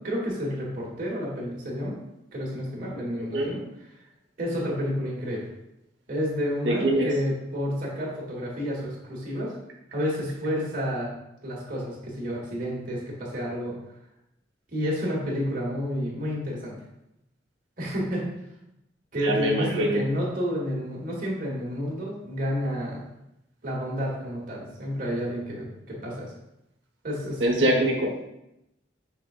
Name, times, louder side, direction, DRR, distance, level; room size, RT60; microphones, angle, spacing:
voice 1, 0.0-2.0 2.3-3.6 4.4-5.4 6.1-9.5 9.9-11.1 11.4-13.7 14.7-16.7 17.8-18.3 19.1-23.0 23.6-26.3 27.0-27.8, equal, 50° right, -4 dB, 1.5 m, -30 dB
voice 2, 3.2-3.5 6.6-7.1 19.2-20.0 27.4-28.2, right 1 dB, 75° right, 0 dB, 0.9 m, -24 dB
5.7 x 3.5 x 2.4 m, 0.85 s
head